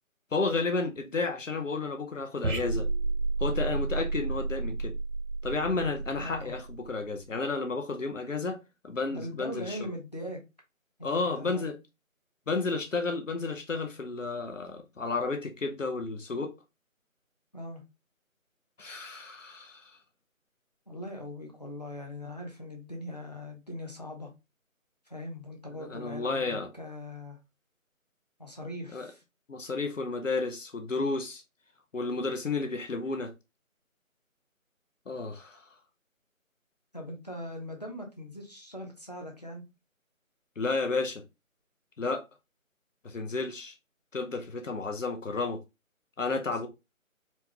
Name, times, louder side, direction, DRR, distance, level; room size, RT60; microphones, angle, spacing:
voice 1, 0.3-2.9 3.4-4.9 5.4-8.6 8.8-9.8 11.0-11.7 12.5-16.5 18.8-20.0 25.8-26.7 28.9-29.1 29.5-31.4 31.9-33.3 35.1-35.7 40.6-41.2 42.0-42.3 43.0-43.7 44.1-45.6 46.2-46.7, left 3 dB, 65° left, 0.8 m, -32 dB
sound 1, 2.4-7.1, right 3 dB, 75° right, 0.9 m, -31 dB
voice 2, 6.2-6.5 9.1-10.4 11.0-11.7 17.5-17.8 20.9-24.3 25.1-27.4 28.4-29.2 36.9-39.6, left 1 dB, 30° left, 0.7 m, -40 dB
4.3 x 2.3 x 2.8 m
figure-of-eight pair, 170°, 41 cm